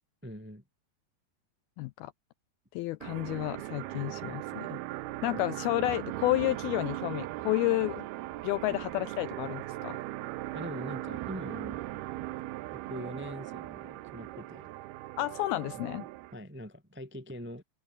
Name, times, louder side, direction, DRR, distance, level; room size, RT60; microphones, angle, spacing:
voice 1, 0.2-0.6 5.3-5.4 10.5-11.9 12.7-14.7 15.9-17.6, equal, 10° right, 0.6 m, -43 dB
voice 2, 1.8-2.1 2.7-4.8 5.2-8.1 8.4-10.0 15.2-16.0, left 17 dB, 85° left, 2.2 m, -31 dB
sound 1, 3.0-16.3, right 17 dB, 75° right, 2.6 m, -39 dB
omnidirectional pair, 5.0 m